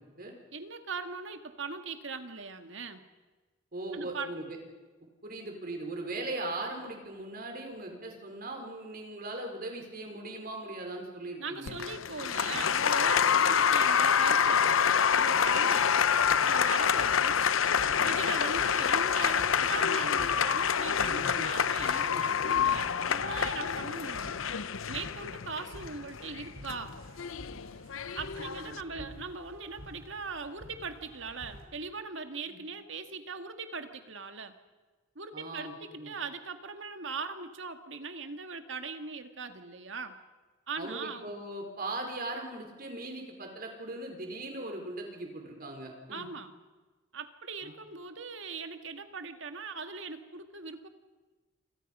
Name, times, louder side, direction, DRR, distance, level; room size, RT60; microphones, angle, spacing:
voice 1, 0.5-3.0 3.9-4.3 11.4-14.8 15.1-16.1 16.4-17.4 18.0-24.4 24.9-27.0 28.1-34.6 35.2-40.2 40.7-41.3 46.1-46.5 47.1-50.9, right 4 dB, 65° right, 7 dB, 1.9 m, -40 dB
voice 2, 3.7-4.6 5.2-11.7 28.4-29.1 32.5-32.6 35.3-35.7 36.0-36.1 40.8-46.3 47.6-47.7, right 2 dB, 45° right, 3 dB, 5.0 m, -39 dB
Applause, 11.7-28.8, left 7 dB, 90° left, 0.8 m, -27 dB
sound 1, 16.2-31.6, equal, 90° right, 5.2 m, -50 dB
27.5 x 26.5 x 5.6 m, 1.3 s
head